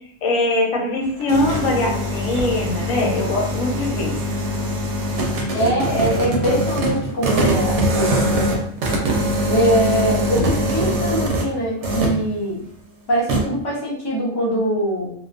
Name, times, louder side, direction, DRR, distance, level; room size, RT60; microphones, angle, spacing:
voice 1, 0.2-4.2, left 1 dB, 90° left, -1 dB, 1.1 m, -22 dB
sound 1, 1.0-11.5 11.8-12.3 13.3-13.4, right 1 dB, 70° right, 0.8 m, -22 dB
voice 2, 5.5-8.6 9.5-12.6 13.1-15.1, right 1 dB, 35° left, -4 dB, 0.4 m, -22 dB
2.3 x 2.2 x 2.4 m, 0.64 s
omnidirectional pair, 1.3 m